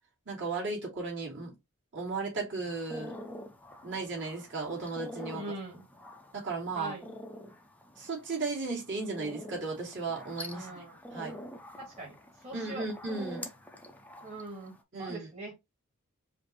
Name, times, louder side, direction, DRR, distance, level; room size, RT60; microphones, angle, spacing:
voice 1, 0.3-1.5 1.9-3.2 3.8-5.4 6.3-6.9 8.0-10.8 11.1-11.4 12.5-13.5 14.9-15.3, right 3 dB, 55° right, 2.6 m, -35 dB
sound 1, 2.7-14.8, left 1 dB, 5° left, 0.6 m, -47 dB
voice 2, 5.3-5.8 6.8-7.1 10.5-11.0 11.8-12.2 12.4-12.9 14.2-15.5, right 1 dB, 30° right, 1.7 m, -42 dB
5.0 x 2.7 x 3.0 m
head